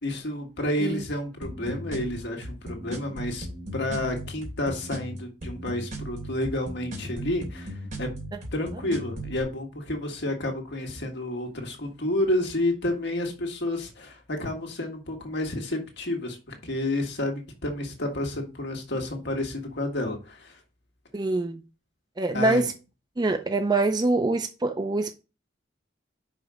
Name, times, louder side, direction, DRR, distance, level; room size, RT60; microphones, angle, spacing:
voice 1, 0.0-3.5 3.7-8.1 8.5-20.6 22.3-22.7, left 1 dB, 60° left, 1.7 m, -30 dB
sound 1, 1.4-9.4, right 1 dB, 45° right, 2.9 m, -37 dB
voice 2, 21.1-21.6 22.2-22.7 23.2-25.1, right 2 dB, 20° right, 0.5 m, -24 dB
5.8 x 5.0 x 6.2 m
head